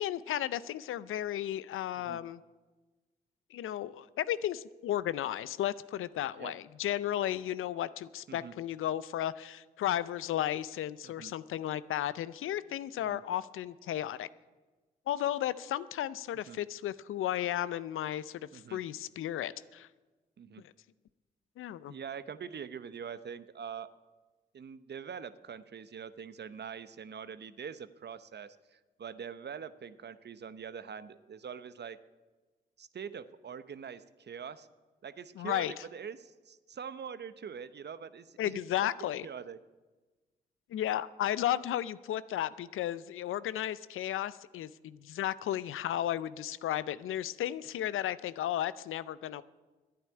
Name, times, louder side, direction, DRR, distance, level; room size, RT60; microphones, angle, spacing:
voice 1, 0.0-2.4 3.5-14.3 15.1-19.9 21.6-22.0 35.4-35.7 38.4-39.3 40.7-49.4, left 12 dB, 75° left, 17 dB, 0.5 m, -34 dB
voice 2, 21.9-23.9 24.5-32.0 32.8-34.7 35.0-38.9 39.2-39.6, right 7 dB, 55° right, 14 dB, 0.9 m, -44 dB
11.0 x 9.4 x 9.9 m, 1.2 s
supercardioid pair, 45°, 21 cm